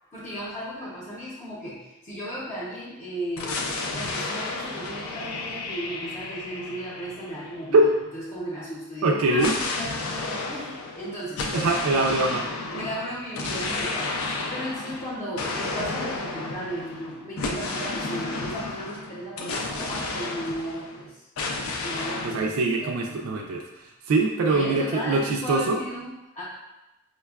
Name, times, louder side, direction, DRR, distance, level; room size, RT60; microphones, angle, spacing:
voice 1, 0.0-3.6 3.9-7.9 8.1-11.5 11.9-12.0 12.7-21.1 21.4-21.5 21.8-22.5 22.8-23.3 24.5-26.4, equal, 30° left, -8 dB, 0.6 m, -35 dB
sound 1, 3.4-8.1 9.4-21.0 21.4-22.4, left 3 dB, 80° left, 0.4 m, -32 dB
voice 2, 9.0-9.5 11.5-12.5 22.2-25.8, right 2 dB, 85° right, 1 dB, 0.4 m, -23 dB
4.9 x 2.2 x 2.3 m, 0.99 s
head